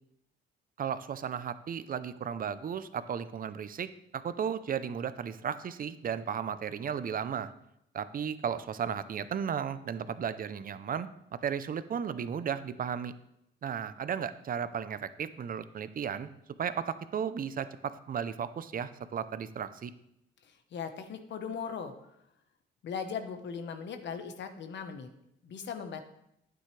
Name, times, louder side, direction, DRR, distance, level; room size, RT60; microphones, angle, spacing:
voice 1, 0.8-7.5 7.9-13.1 13.6-16.3 16.6-19.9, right 7 dB, 45° right, 13 dB, 0.7 m, -35 dB
voice 2, 20.4-21.9 22.8-25.1 25.4-26.0, left 6 dB, 65° left, 7 dB, 1.2 m, -38 dB
11.5 x 9.3 x 3.3 m, 0.79 s
cardioid pair, 90°, 20 cm